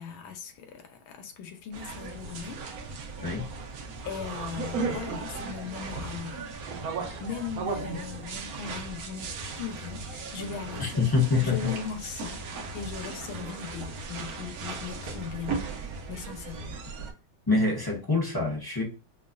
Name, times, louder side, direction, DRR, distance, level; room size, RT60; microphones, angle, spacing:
voice 1, 0.0-2.6 4.0-6.5 7.2-9.3 9.6-11.1 11.4-12.4 12.7-15.6 16.1-16.7, left 7 dB, 85° left, 1.6 m, -38 dB
sound 1, 1.7-17.1, right 4 dB, 60° right, 1.1 m, -36 dB
voice 2, 10.8-11.7 17.5-18.8, left 3 dB, 30° left, 0.4 m, -25 dB
5.1 x 2.5 x 2.2 m
omnidirectional pair, 2.1 m